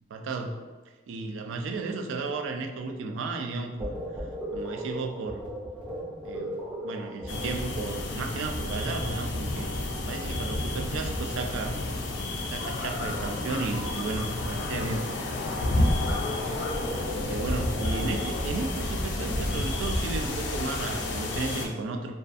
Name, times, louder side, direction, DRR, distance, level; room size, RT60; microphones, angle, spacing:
voice 1, 0.1-0.6 1.1-4.3 4.5-5.4 6.2-9.7 10.1-11.8 12.5-15.1 15.7-16.3 16.9-22.2, right 3 dB, 85° right, 5 dB, 0.3 m, -34 dB
sound 1, 3.8-8.2, equal, 10° right, 0.5 m, -36 dB
sound 2, 7.3-21.7, left 1 dB, 70° left, 0.4 m, -30 dB
2.4 x 2.3 x 2.4 m, 1.2 s
head